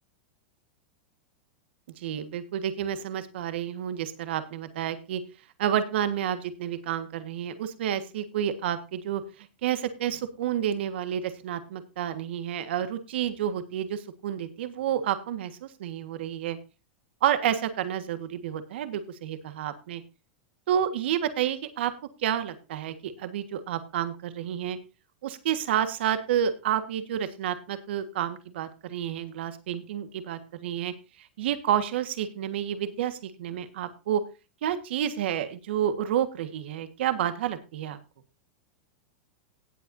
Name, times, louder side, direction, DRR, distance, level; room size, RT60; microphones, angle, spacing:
voice 1, 2.0-5.2 5.6-9.2 9.6-16.6 17.2-20.0 20.7-21.9 22.2-24.8 25.2-30.9 31.2-34.2 34.6-38.0, right 10 dB, 75° right, 10 dB, 1.6 m, -30 dB
17.5 x 8.2 x 2.7 m, 0.30 s
supercardioid pair, 145°, 6 cm